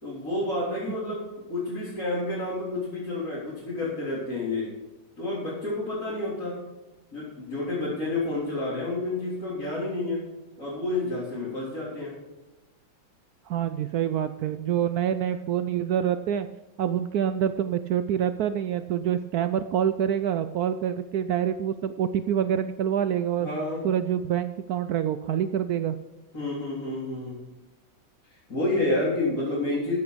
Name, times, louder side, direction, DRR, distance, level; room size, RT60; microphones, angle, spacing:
voice 1, 0.0-4.7 5.2-6.6 7.1-10.2 10.6-12.1 23.4-23.8 26.3-27.4 28.5-30.0, left 2 dB, 40° left, -9 dB, 4.0 m, -29 dB
voice 2, 13.5-16.5 16.8-23.5 23.8-26.0, right 9 dB, 80° right, 11 dB, 0.8 m, -26 dB
14.0 x 8.3 x 5.0 m, 1.1 s
omnidirectional pair, 2.2 m